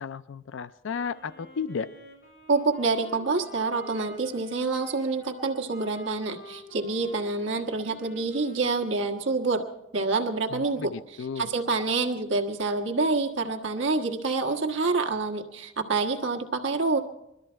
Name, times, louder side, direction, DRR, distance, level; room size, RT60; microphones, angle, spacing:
voice 1, 0.0-1.9 10.5-11.5, left 6 dB, 80° left, 14 dB, 0.4 m, -34 dB
Wind instrument woodwind instrument, 1.1-9.2, right 1 dB, 65° left, 6.5 m, -47 dB
voice 2, 2.5-9.6 9.9-10.9 11.3-17.0, right 3 dB, 80° right, 3 dB, 1.4 m, -27 dB
21.5 x 13.0 x 4.4 m, 0.87 s
head